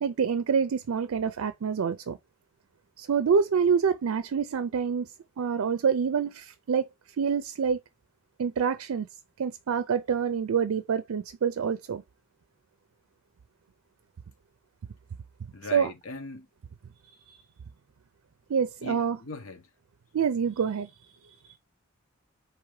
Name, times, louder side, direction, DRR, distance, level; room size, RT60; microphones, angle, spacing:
voice 1, 0.0-2.2 3.0-5.1 5.4-6.9 7.2-7.8 8.4-9.1 9.4-12.0 15.7-15.9 17.3-17.4 18.5-19.2 20.1-21.5, right 6 dB, 90° right, 0.4 m, -27 dB
voice 2, 15.5-16.5 18.8-19.7, left 3 dB, 70° left, 1.0 m, -39 dB
4.8 x 2.9 x 3.1 m
head